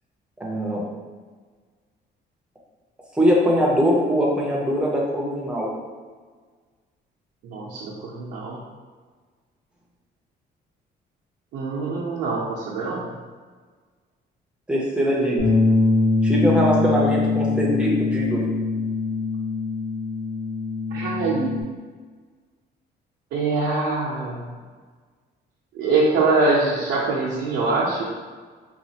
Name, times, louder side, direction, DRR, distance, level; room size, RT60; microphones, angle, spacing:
voice 1, 0.4-0.8 3.2-5.7 14.7-15.4 16.2-18.5, equal, 5° right, -3 dB, 0.6 m, -21 dB
voice 2, 7.4-8.6 11.5-13.1 20.9-21.5 23.3-24.5 25.7-28.0, right 3 dB, 80° right, -7 dB, 0.6 m, -23 dB
Bass guitar, 15.4-21.6, left 3 dB, 75° left, 1.4 m, -23 dB
4.1 x 2.3 x 2.8 m, 1.5 s
cardioid pair, 165°, 18 cm